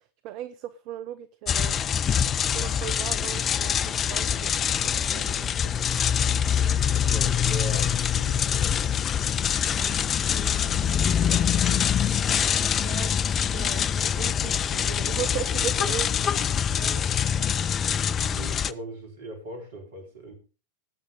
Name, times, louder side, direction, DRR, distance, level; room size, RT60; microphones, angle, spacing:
voice 1, 0.0-1.8 2.2-6.0 7.3-7.4 9.6-10.0 12.8-17.1 17.4-17.5, right 12 dB, 40° right, 12 dB, 0.8 m, -38 dB
sound 1, 1.5-18.7, left 8 dB, 25° left, 0.5 m, -24 dB
voice 2, 6.9-8.9 9.8-12.6 18.1-20.3, right 1 dB, 60° right, 3 dB, 4.4 m, -41 dB
20.0 x 8.2 x 3.8 m, 0.35 s
figure-of-eight pair, 90°, 0 cm